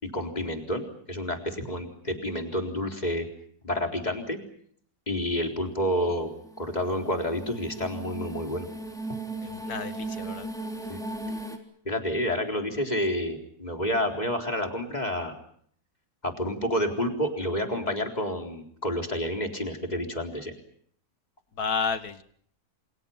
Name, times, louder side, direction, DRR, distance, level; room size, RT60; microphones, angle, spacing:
voice 1, 0.0-3.2 3.6-4.4 5.1-8.7 10.9-11.0 11.9-15.3 16.2-20.5, equal, 25° left, 3 dB, 4.2 m, -29 dB
sound 1, 6.1-11.6, right 2 dB, ahead, 3.7 m, -37 dB
voice 2, 9.4-10.5 21.5-22.2, left 5 dB, 90° left, 10 dB, 2.3 m, -31 dB
29.0 x 27.5 x 5.8 m, 0.64 s
omnidirectional pair, 1.6 m